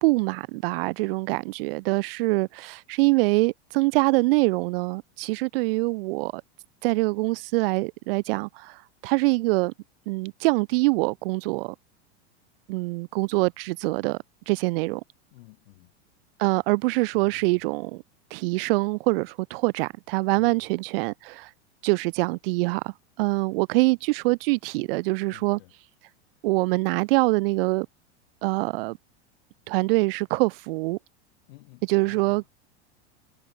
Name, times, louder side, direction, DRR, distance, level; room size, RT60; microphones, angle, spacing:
voice 1, 0.0-6.4 6.8-9.7 10.1-11.7 12.7-14.2 14.5-15.0 16.4-18.0 18.3-21.5 21.8-25.6 26.4-27.9 28.4-29.0 29.7-31.0 31.9-32.5, right 25 dB, 55° right, 0.4 m, -24 dB
voice 2, 15.3-15.9 17.1-17.6 20.3-20.7 25.3-25.7 31.5-32.4, left 25 dB, 60° left, 6.4 m, -52 dB
supercardioid pair, 135°, 34 cm